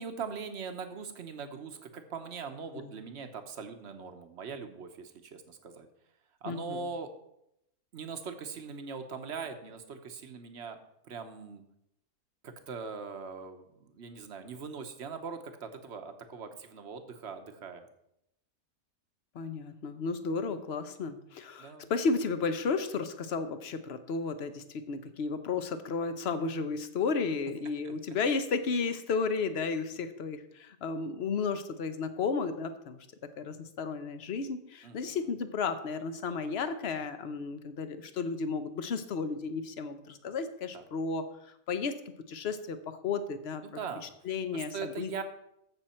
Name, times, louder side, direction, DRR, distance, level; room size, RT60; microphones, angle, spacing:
voice 1, 0.0-5.9 6.4-7.1 7.9-10.8 11.0-11.6 12.4-17.9 21.6-21.9 27.8-27.9 34.8-35.2 40.7-40.8 43.6-44.0 44.5-45.2, right 5 dB, 50° right, 7 dB, 1.2 m, -41 dB
voice 2, 6.4-6.9 19.3-33.0 33.4-41.3 41.7-42.0 42.3-43.6 44.2-45.2, left 4 dB, 50° left, 10 dB, 1.0 m, -33 dB
14.5 x 6.3 x 4.4 m, 0.79 s
omnidirectional pair, 1.5 m